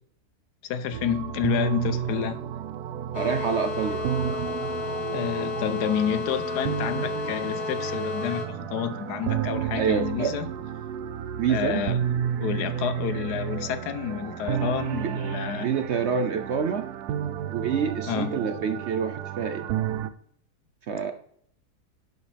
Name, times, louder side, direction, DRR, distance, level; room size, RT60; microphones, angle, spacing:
voice 1, 0.6-2.4 5.1-10.5 11.5-12.0 12.4-15.7 18.1-18.3, left 9 dB, 85° left, 1.3 m, -29 dB
sound 1, 0.9-20.1, right 9 dB, 80° right, 1.1 m, -31 dB
sound 2, 3.1-8.5, left 4 dB, 65° left, 1.9 m, -32 dB
voice 2, 3.1-4.1 9.7-10.4 11.4-11.8 15.5-16.9 17.5-19.7 20.9-21.1, right 6 dB, 60° right, 0.7 m, -27 dB
11.0 x 7.9 x 3.4 m
omnidirectional pair, 1.7 m